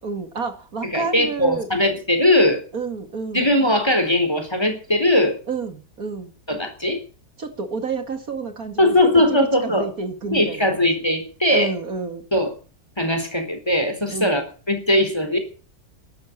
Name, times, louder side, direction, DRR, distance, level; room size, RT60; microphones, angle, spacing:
voice 1, 0.0-1.7 2.7-3.5 5.5-6.3 7.4-8.9 9.3-10.9 11.5-12.2 14.1-14.4, right 4 dB, 60° right, 7 dB, 2.5 m, -29 dB
voice 2, 0.8-2.6 3.3-5.4 6.5-7.0 8.8-9.9 10.3-11.7 12.3-12.5 13.0-14.4 14.7-15.4, left 1 dB, 15° left, 6 dB, 4.0 m, -19 dB
12.5 x 11.5 x 8.6 m, 0.37 s
omnidirectional pair, 1.7 m